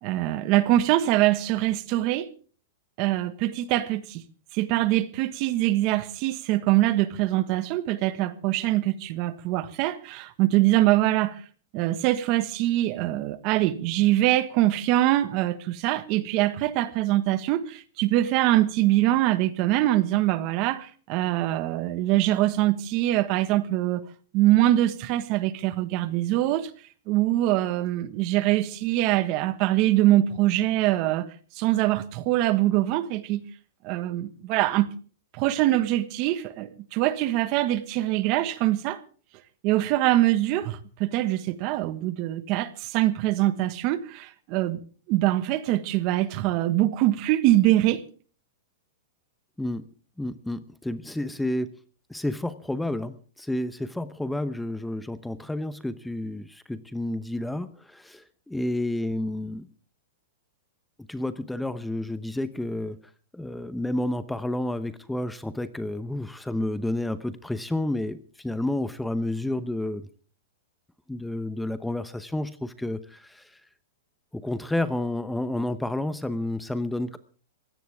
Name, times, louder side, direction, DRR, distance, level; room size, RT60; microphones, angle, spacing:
voice 1, 0.0-2.3 3.0-4.2 4.5-11.4 11.7-24.0 24.3-26.7 27.1-31.3 31.5-33.4 33.8-34.9 35.3-39.0 39.6-44.8 45.1-48.0, right 15 dB, 40° right, 1.5 m, -23 dB
voice 2, 50.2-51.7 52.1-59.7 61.1-63.0 63.3-70.1 71.1-73.6 74.3-77.2, left 1 dB, 5° left, 0.9 m, -30 dB
21.5 x 16.5 x 3.5 m
hypercardioid pair, 150°, 0 cm